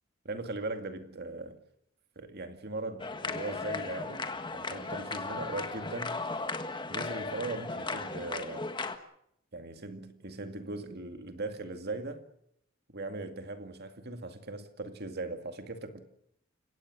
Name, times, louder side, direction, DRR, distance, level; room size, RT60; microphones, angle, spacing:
voice 1, 0.2-1.6 2.2-4.2 4.5-6.2 6.9-8.7 9.5-12.2 12.9-16.0, right 2 dB, 50° right, 2.3 m, -39 dB
sound 1, 3.0-9.0, left 3 dB, 25° left, 1.6 m, -36 dB
30.0 x 17.0 x 6.4 m
head